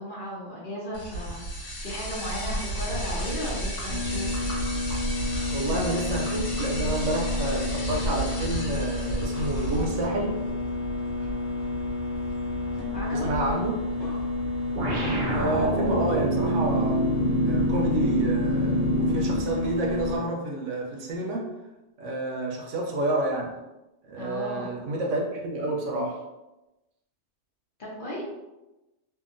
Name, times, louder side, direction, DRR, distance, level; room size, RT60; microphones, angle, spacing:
voice 1, 0.0-4.3 12.9-13.3 24.2-24.7 27.8-28.2, equal, 50° left, -4 dB, 0.8 m, -35 dB
sound 1, 0.9-10.0, right 1 dB, 80° left, 1.4 m, -32 dB
sound 2, 3.9-20.2, left 2 dB, 30° left, 1.1 m, -30 dB
voice 2, 5.5-10.5 13.1-13.9 15.3-21.5 22.0-23.5 24.0-26.2, right 2 dB, 75° right, 0 dB, 0.9 m, -29 dB
sound 3, 14.8-19.5, right 1 dB, 50° right, 0.7 m, -26 dB
2.7 x 2.5 x 2.5 m, 1.0 s
omnidirectional pair, 1.3 m